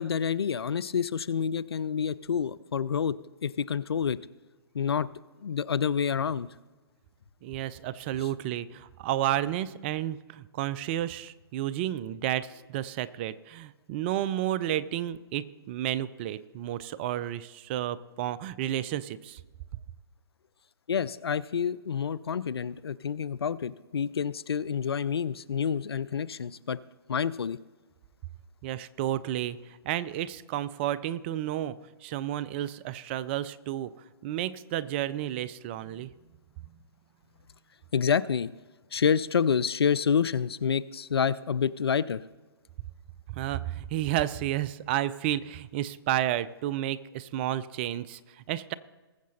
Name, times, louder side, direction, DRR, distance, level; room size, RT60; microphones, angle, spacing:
voice 1, 0.0-4.2 4.7-5.1 5.4-6.5 20.9-26.8 27.1-27.6 37.9-38.5 38.9-42.2, left 7 dB, 75° left, 19 dB, 0.5 m, -28 dB
voice 2, 7.4-19.4 28.6-33.9 34.2-36.1 43.3-48.7, right 12 dB, 25° right, 17 dB, 0.4 m, -31 dB
20.0 x 7.4 x 4.1 m, 1.2 s
figure-of-eight pair, 135°, 13 cm